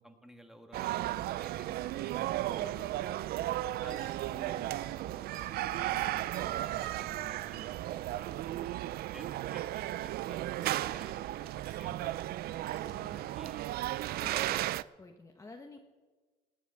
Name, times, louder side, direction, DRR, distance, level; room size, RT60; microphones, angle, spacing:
voice 1, 0.0-2.9 3.8-8.8 9.1-13.7, equal, ahead, 4 dB, 1.7 m, -53 dB
sound 1, 0.7-14.8, right 15 dB, 65° right, 0.4 m, -35 dB
voice 2, 2.6-3.5 12.9-13.3 14.2-14.7 15.0-15.8, left 3 dB, 20° left, 2 dB, 1.1 m, -51 dB
sound 2, 3.9-4.2 5.3-5.7 6.3-6.8 10.6-11.2 11.7-11.8 12.7-13.1 14.3-14.5, right 5 dB, 30° right, 5.5 m, -58 dB
19.0 x 7.1 x 8.6 m, 1.3 s
cardioid pair, 110°, 17 cm